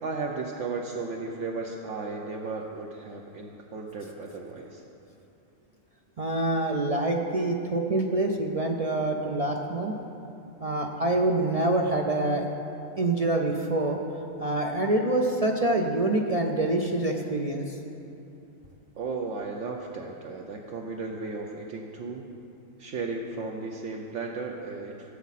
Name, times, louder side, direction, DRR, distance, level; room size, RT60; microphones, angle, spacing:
voice 1, 0.0-4.8 19.0-22.2 22.8-25.1, right 3 dB, 70° right, 0 dB, 1.0 m, -35 dB
voice 2, 6.2-9.9 10.6-12.4 13.0-14.0 14.4-17.8, right 2 dB, 45° right, 2 dB, 0.4 m, -26 dB
14.5 x 7.1 x 4.1 m, 2.7 s
omnidirectional pair, 1.4 m